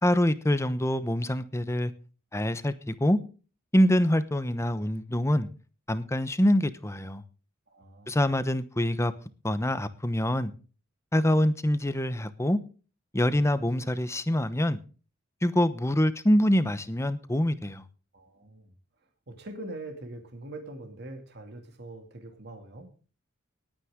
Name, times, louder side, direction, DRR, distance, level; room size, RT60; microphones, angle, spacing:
voice 1, 0.0-1.9 2.3-3.2 3.7-5.5 5.9-7.2 8.1-9.1 9.4-10.5 11.1-12.6 13.1-14.8 15.4-17.8, left 1 dB, 15° left, 12 dB, 0.9 m, -25 dB
voice 2, 7.7-8.2 18.1-18.7 19.3-22.9, right 2 dB, 55° right, 4 dB, 2.5 m, -43 dB
19.5 x 9.0 x 3.7 m, 0.36 s
head